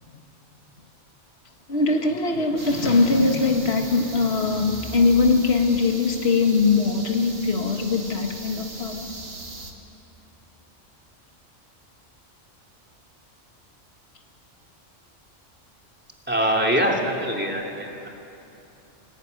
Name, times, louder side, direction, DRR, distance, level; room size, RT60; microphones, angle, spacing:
voice 1, 1.7-9.1, left 4 dB, 55° left, 4 dB, 1.9 m, -21 dB
sound 1, 2.6-9.7, right 2 dB, 50° right, 2.2 m, -39 dB
voice 2, 16.3-18.1, equal, 10° right, -1 dB, 3.0 m, -23 dB
25.5 x 18.0 x 9.6 m, 3.0 s
omnidirectional pair, 1.3 m